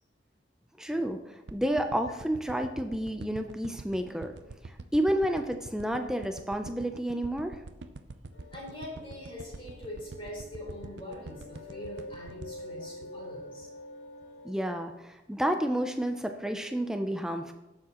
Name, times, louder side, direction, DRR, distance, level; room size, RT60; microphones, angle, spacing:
voice 1, 0.8-4.3 4.6-7.6 14.4-17.5, right 1 dB, 5° right, 5 dB, 0.5 m, -30 dB
sound 1, 1.5-13.8 14.2-14.3, right 3 dB, 75° right, 0.6 m, -45 dB
sound 2, 8.3-14.5, left 1 dB, 85° left, 2.8 m, -47 dB
voice 2, 8.5-13.7, left 1 dB, 30° left, -4 dB, 4.1 m, -43 dB
17.5 x 7.4 x 3.0 m, 1.0 s
head